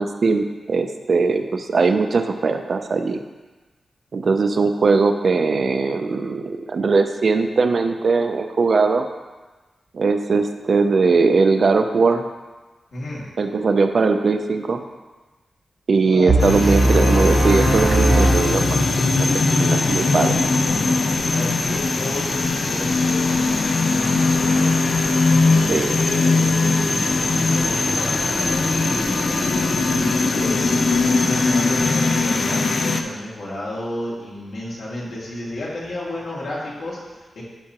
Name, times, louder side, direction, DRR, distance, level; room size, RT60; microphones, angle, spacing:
voice 1, 0.0-3.2 4.1-9.1 9.9-12.3 13.4-14.8 15.9-19.0 19.6-20.4 25.7-26.0, right 4 dB, 50° right, 7 dB, 0.4 m, -20 dB
voice 2, 16.0-16.9 21.3-24.8 25.2-29.4 29.9-30.7 31.2-37.4, left 1 dB, 75° left, -6 dB, 2.2 m, -32 dB
sound 1, 16.3-19.2, right 1 dB, 85° right, 1.8 m, -19 dB
sound 2, 16.4-33.0, left 3 dB, 40° left, 0.4 m, -20 dB
11.0 x 4.8 x 2.9 m, 1.2 s
wide cardioid pair, 175°, 0 cm